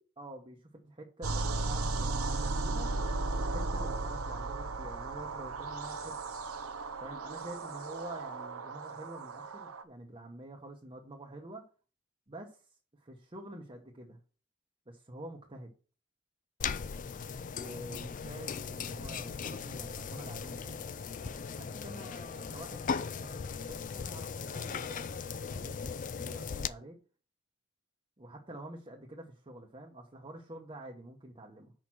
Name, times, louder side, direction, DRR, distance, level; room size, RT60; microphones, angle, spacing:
voice 1, 0.2-2.9 3.3-6.2 7.0-11.6 12.3-14.2 14.9-15.7 17.5-22.9 23.2-25.8 26.1-27.0 28.2-31.7, right 1 dB, 25° right, -1 dB, 0.9 m, -48 dB
sound 1, 1.2-9.8, right 3 dB, 85° right, 0.7 m, -35 dB
sound 2, 16.6-26.7, left 6 dB, 35° left, 0.3 m, -38 dB
6.1 x 5.0 x 6.0 m, 0.38 s
head